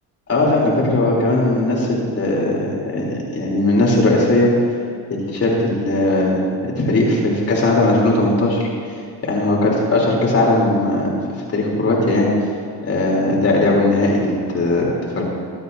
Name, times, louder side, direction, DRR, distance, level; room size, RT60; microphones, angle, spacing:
voice 1, 0.3-4.5 5.1-6.4 6.8-8.6 9.2-11.1 11.5-12.3 12.8-14.9 15.2-15.3, left 2 dB, 35° left, -3 dB, 3.3 m, -18 dB
25.5 x 8.8 x 2.7 m, 2.4 s
cardioid pair, 110°, 42 cm